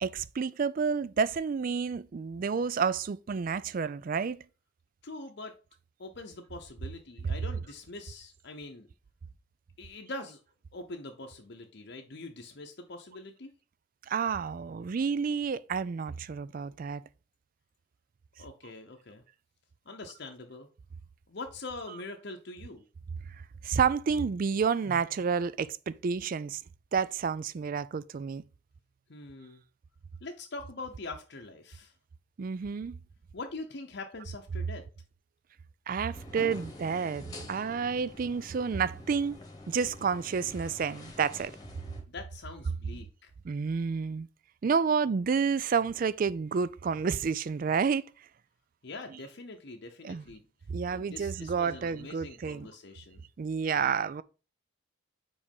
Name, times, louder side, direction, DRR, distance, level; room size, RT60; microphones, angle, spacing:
voice 1, 0.0-4.4 14.1-17.0 23.6-26.6 26.9-28.4 32.4-33.0 35.9-39.4 39.7-41.5 43.4-44.3 44.6-48.0 50.0-50.2 50.7-52.7 53.4-54.2, right 6 dB, 40° right, 0.3 m, -30 dB
voice 2, 5.0-5.5 6.0-8.9 9.8-10.4 10.7-13.5 18.4-19.2 19.9-20.7 21.3-22.8 29.1-29.6 30.2-31.9 33.3-34.8 42.1-43.3 48.8-50.4 50.9-53.2 53.7-54.0, left 2 dB, 55° left, 0.8 m, -43 dB
sound 1, 36.1-42.0, left 2 dB, 20° left, 1.2 m, -47 dB
5.1 x 4.8 x 5.3 m
head